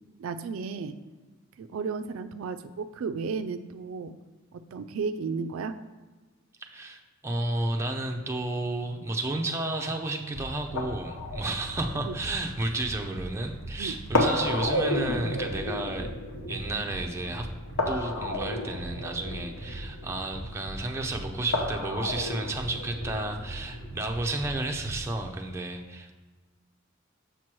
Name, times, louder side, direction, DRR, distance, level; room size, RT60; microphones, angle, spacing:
voice 1, 0.2-0.9 1.6-4.1 4.5-5.8 12.1-12.2 13.8-14.0, right 5 dB, 75° right, 10 dB, 0.3 m, -33 dB
voice 2, 6.6-16.2 16.5-17.5 17.9-26.1, right 2 dB, 15° right, 2 dB, 0.5 m, -32 dB
sound 1, 7.4-25.0, left 1 dB, 85° left, 0.9 m, -34 dB
sound 2, 10.3-25.3, right 1 dB, 50° left, 1.6 m, -41 dB
6.8 x 3.1 x 5.9 m, 1.3 s
head